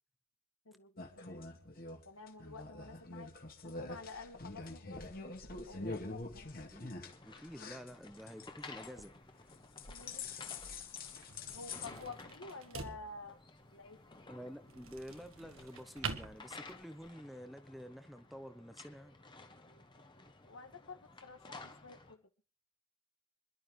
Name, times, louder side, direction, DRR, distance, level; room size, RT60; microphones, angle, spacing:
voice 1, 0.6-1.3 2.0-3.3 3.6-5.0 5.7-6.5 9.9-10.5 11.5-13.4 13.7-14.0 19.7-19.8 20.4-22.2, left 3 dB, 90° left, 1.8 m, -50 dB
sound 1, 1.0-8.5 8.8-9.2 9.5-11.9, left 3 dB, 45° left, 2.1 m, -45 dB
voice 2, 6.7-9.1 14.3-19.2, equal, ahead, 0.8 m, -49 dB
sound 2, 7.0-22.1, left 3 dB, 20° left, 1.3 m, -55 dB
sound 3, 8.4-17.1, right 5 dB, 75° right, 1.4 m, -48 dB
26.5 x 11.5 x 3.2 m
head